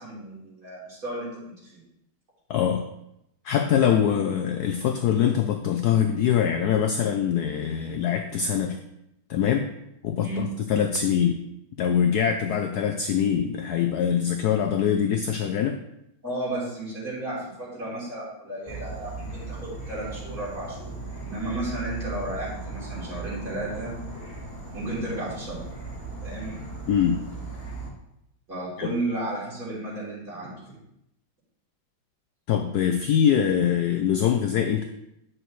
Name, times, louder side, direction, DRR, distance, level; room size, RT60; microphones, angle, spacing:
voice 1, 0.0-1.8 10.2-10.5 16.2-21.0 21.3-23.9 24.7-25.6 26.2-26.6 28.5-30.8, right 1 dB, 45° right, -7 dB, 3.7 m, -33 dB
voice 2, 2.5-2.8 3.4-8.8 9.3-9.7 10.0-11.4 11.8-15.8 26.9-27.2 28.8-28.9 32.5-34.8, left 8 dB, 80° left, 6 dB, 0.9 m, -23 dB
Insect / Frog, 18.7-27.9, right 3 dB, 15° left, 2.2 m, -37 dB
9.1 x 6.3 x 3.1 m, 0.82 s
omnidirectional pair, 2.2 m